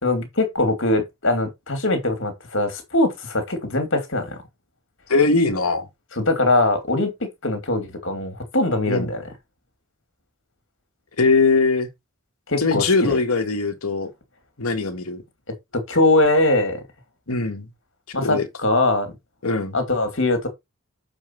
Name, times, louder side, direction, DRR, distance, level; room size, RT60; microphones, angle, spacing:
voice 1, 0.0-4.4 6.2-7.1 7.4-9.2 12.5-13.2 15.7-16.8 18.1-19.1 19.7-20.5, left 2 dB, 60° left, 2.5 m, -21 dB
voice 2, 5.1-5.9 8.9-9.1 11.2-11.9 12.6-14.1 14.6-15.2 17.3-17.6 18.2-18.5 19.4-19.7, left 3 dB, 75° left, 1.6 m, -21 dB
7.4 x 4.9 x 4.5 m
head